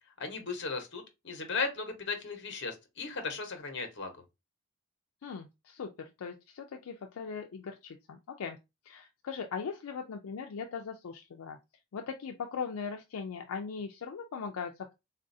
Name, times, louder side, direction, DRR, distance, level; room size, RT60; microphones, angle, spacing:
voice 1, 0.2-4.1, left 4 dB, 55° left, 0.9 m, -36 dB
voice 2, 5.2-8.6 8.9-11.6 11.9-14.9, left 5 dB, 75° left, 0.4 m, -39 dB
3.9 x 2.5 x 2.6 m
head